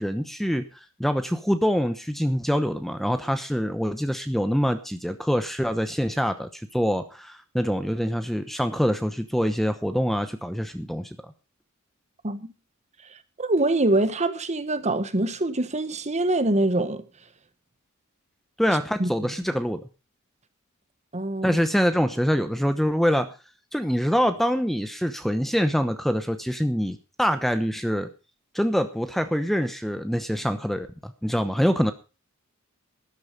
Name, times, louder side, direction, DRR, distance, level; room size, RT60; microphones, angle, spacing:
voice 1, 0.0-11.1 18.6-19.8 21.4-23.3 23.7-28.1 28.5-31.9, equal, ahead, 0.9 m, -25 dB
voice 2, 13.4-17.0 19.0-19.1 21.1-21.6, right 2 dB, 30° right, 1.3 m, -24 dB
13.0 x 12.0 x 5.2 m
head